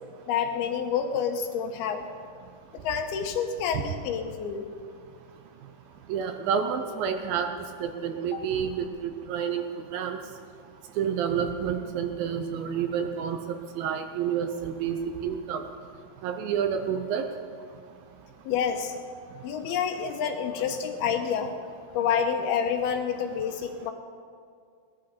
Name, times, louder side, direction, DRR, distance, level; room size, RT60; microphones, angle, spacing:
voice 1, 0.3-2.1 2.7-4.7 8.3-8.4 18.4-18.9 19.4-21.6 21.9-23.9, left 7 dB, 75° left, 5 dB, 2.8 m, -28 dB
voice 2, 6.1-7.5 7.8-9.6 9.9-10.2 11.0-15.6 16.2-17.3, right 7 dB, 75° right, 6 dB, 2.3 m, -29 dB
18.5 x 11.5 x 5.1 m, 2.3 s
omnidirectional pair, 4.6 m